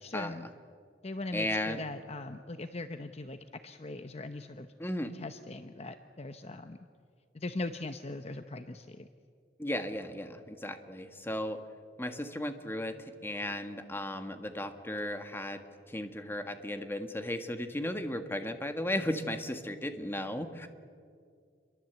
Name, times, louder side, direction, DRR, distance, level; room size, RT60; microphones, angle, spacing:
voice 1, 0.0-0.5 1.0-3.4 3.6-4.7 5.1-6.8 7.3-9.1, left 2 dB, 35° left, 8 dB, 0.8 m, -40 dB
voice 2, 1.3-1.8 4.8-5.1 9.6-11.6 12.0-12.9 13.2-15.6 15.9-20.7, left 1 dB, 15° left, 7 dB, 1.7 m, -35 dB
28.5 x 22.5 x 8.2 m, 2.2 s
head